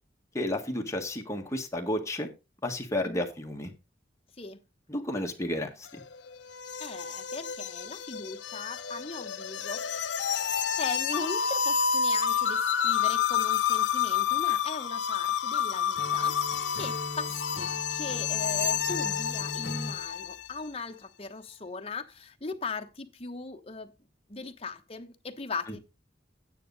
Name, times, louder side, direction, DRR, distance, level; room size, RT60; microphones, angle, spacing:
voice 1, 0.3-2.3 2.6-3.7 4.9-5.9, left 1 dB, 15° left, 1.7 m, -32 dB
sound 1, 5.9-20.5, left 8 dB, 85° left, 0.6 m, -29 dB
voice 2, 6.8-10.1 10.8-23.9 24.3-25.8, left 3 dB, 35° left, 1.1 m, -39 dB
Acoustic guitar / Strum, 16.0-20.1, left 1 dB, 60° left, 2.0 m, -39 dB
9.8 x 9.2 x 4.0 m
head